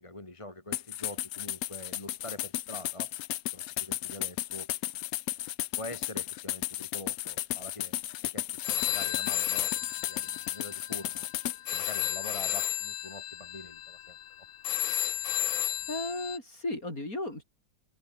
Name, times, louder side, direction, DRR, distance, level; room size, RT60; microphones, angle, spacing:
voice 1, 0.0-3.1 3.5-4.7 5.8-8.0 8.2-11.3 11.7-14.2, left 1 dB, 15° left, 2.1 m, -45 dB
sound 1, 0.7-11.6, left 14 dB, 70° left, 0.9 m, -34 dB
sound 2, 8.6-16.4, left 12 dB, 90° left, 1.8 m, -33 dB
voice 2, 15.9-17.4, left 2 dB, 45° left, 7.7 m, -35 dB
omnidirectional pair, 2.0 m